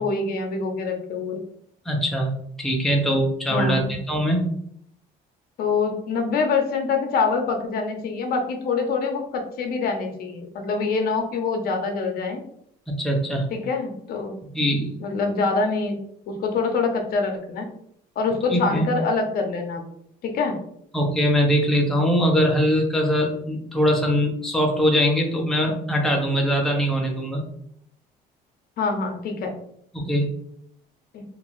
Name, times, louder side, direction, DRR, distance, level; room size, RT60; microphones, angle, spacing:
voice 1, 0.0-1.4 3.5-4.0 5.6-12.4 13.5-14.4 15.0-16.0 16.3-17.7 18.2-19.9 20.2-20.6 28.8-29.5 31.1-31.2, left 4 dB, 60° left, 4 dB, 0.7 m, -25 dB
voice 2, 1.9-2.3 2.6-3.8 4.1-4.5 13.0-13.4 14.5-15.0 18.5-18.9 20.9-27.4 29.9-30.3, equal, ahead, 1 dB, 0.5 m, -22 dB
2.5 x 2.3 x 3.0 m, 0.70 s
cardioid pair, 110°, 17 cm